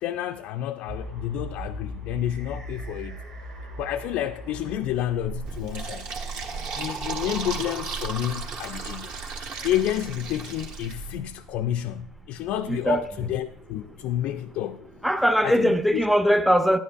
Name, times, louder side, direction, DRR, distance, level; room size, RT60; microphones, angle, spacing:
voice 1, 0.0-3.2 3.8-6.1 6.8-9.1 9.6-14.8 15.4-16.0, left 12 dB, 60° left, 0.4 m, -30 dB
sound 1, 0.9-15.5, right 2 dB, 75° right, 2.5 m, -40 dB
Fill (with liquid), 5.5-11.2, right 4 dB, 55° right, 1.3 m, -35 dB
voice 2, 12.7-13.0 15.0-16.8, equal, ahead, 0.5 m, -20 dB
10.5 x 10.0 x 2.3 m
hypercardioid pair, 75°, 3 cm